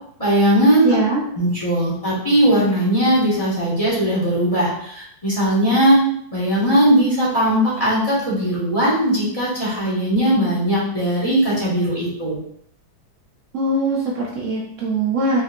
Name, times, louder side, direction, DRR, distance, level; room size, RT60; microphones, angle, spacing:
voice 1, 0.2-1.0 1.3-6.0 6.3-12.4, right 1 dB, 20° left, -7 dB, 1.6 m, -18 dB
voice 2, 0.8-1.2 13.5-15.4, right 2 dB, 80° right, -4 dB, 0.6 m, -21 dB
4.3 x 3.4 x 2.5 m, 0.69 s
omnidirectional pair, 2.1 m